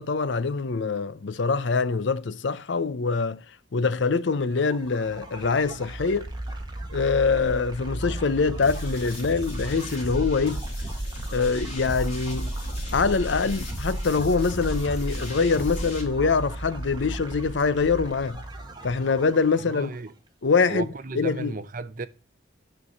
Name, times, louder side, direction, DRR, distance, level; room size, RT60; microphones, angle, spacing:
voice 1, 0.0-3.4 3.7-6.3 6.9-10.6 11.3-12.5 12.9-18.4 18.8-19.9 20.4-20.9 21.1-21.5, left 4 dB, 65° left, 0.6 m, -24 dB
sound 1, 4.4-20.1, right 1 dB, 20° right, 1.3 m, -36 dB
sound 2, 8.6-16.0, equal, 35° left, 3.0 m, -34 dB
voice 2, 19.6-20.1 20.7-22.1, right 2 dB, 45° right, 0.7 m, -34 dB
9.7 x 4.6 x 6.9 m
head